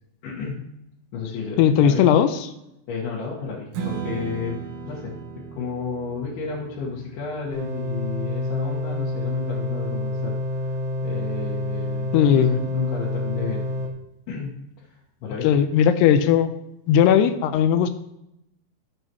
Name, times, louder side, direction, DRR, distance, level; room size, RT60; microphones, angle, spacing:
voice 1, 0.2-0.6 1.1-2.2 2.9-10.8 11.0-13.8 14.3-15.6, left 5 dB, 65° left, -6 dB, 3.4 m, -32 dB
voice 2, 1.6-2.3 12.1-12.6 15.4-16.5 16.9-17.9, left 9 dB, 85° left, 10 dB, 2.6 m, -17 dB
Strum, 3.7-10.0, right 6 dB, 90° right, 3.6 m, -37 dB
sound 1, 7.5-13.9, left 1 dB, 65° right, 1.0 m, -28 dB
15.0 x 7.7 x 3.0 m, 0.83 s
omnidirectional pair, 5.0 m